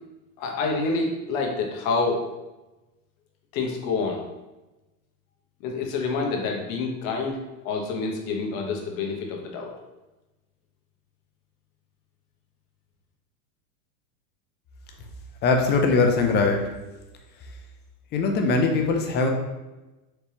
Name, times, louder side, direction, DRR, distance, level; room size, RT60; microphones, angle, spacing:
voice 1, 0.4-2.3 3.5-4.2 5.6-7.4 7.6-9.7, left 4 dB, 60° left, 1 dB, 1.1 m, -27 dB
voice 2, 15.4-16.6 18.1-19.3, left 3 dB, 25° left, 3 dB, 0.4 m, -21 dB
4.3 x 3.3 x 2.8 m, 1.1 s
supercardioid pair, 130°, 45 cm